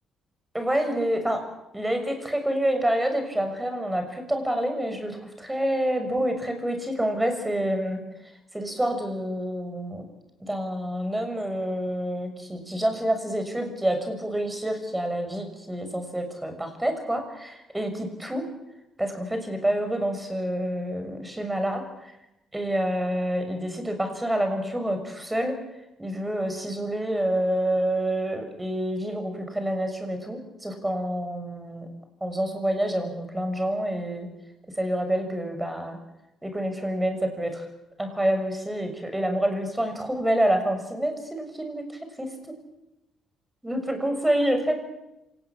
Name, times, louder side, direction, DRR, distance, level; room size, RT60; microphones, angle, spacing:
voice 1, 0.5-1.5 1.7-8.0 8.5-10.1 10.4-18.4 19.0-21.8 22.5-25.6 26.0-31.9 32.2-34.3 34.8-36.0 36.4-37.6 38.0-41.8 42.2-42.3 43.6-44.8, right 1 dB, 10° right, 6 dB, 6.7 m, -27 dB
26.5 x 19.0 x 8.9 m, 0.91 s
cardioid pair, 90°, 0 cm